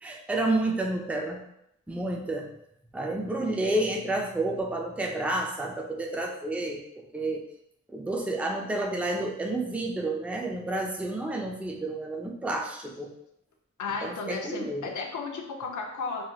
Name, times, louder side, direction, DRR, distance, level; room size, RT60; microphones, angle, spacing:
voice 1, 0.0-1.4 1.9-2.5 2.9-6.8 7.1-7.4 7.9-13.1 14.0-14.8, right 2 dB, 5° right, 1 dB, 0.4 m, -30 dB
voice 2, 13.8-16.2, left 4 dB, 80° left, 3 dB, 0.5 m, -34 dB
3.1 x 2.9 x 2.3 m, 0.77 s
wide cardioid pair, 90°, 30 cm